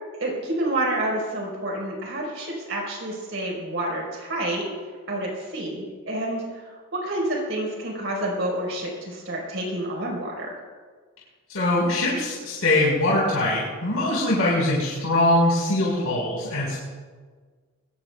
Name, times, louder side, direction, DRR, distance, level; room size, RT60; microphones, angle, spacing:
voice 1, 0.2-4.7 5.1-10.6, right 1 dB, 55° right, -2 dB, 4.4 m, -29 dB
voice 2, 11.5-16.8, left 1 dB, 75° left, -5 dB, 4.6 m, -22 dB
22.5 x 19.0 x 2.3 m, 1.5 s
head